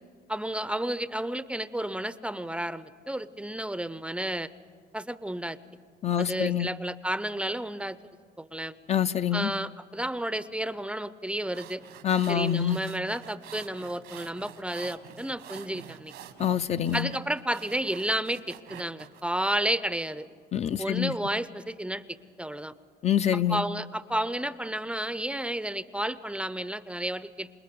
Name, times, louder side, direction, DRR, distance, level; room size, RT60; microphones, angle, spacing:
voice 1, 0.3-4.5 4.9-5.6 6.2-8.0 8.4-8.7 9.3-11.8 12.3-16.1 16.9-20.3 20.8-22.7 23.3-27.5, right 1 dB, 5° right, 15 dB, 0.6 m, -32 dB
voice 2, 6.0-6.7 8.9-9.5 12.0-12.8 16.4-17.1 20.5-21.1 23.0-23.7, left 9 dB, 40° left, 10 dB, 0.5 m, -26 dB
sound 1, 11.3-19.2, right 11 dB, 80° right, 1.5 m, -47 dB
27.5 x 19.5 x 6.8 m, 2.2 s
cardioid pair, 110°, 17 cm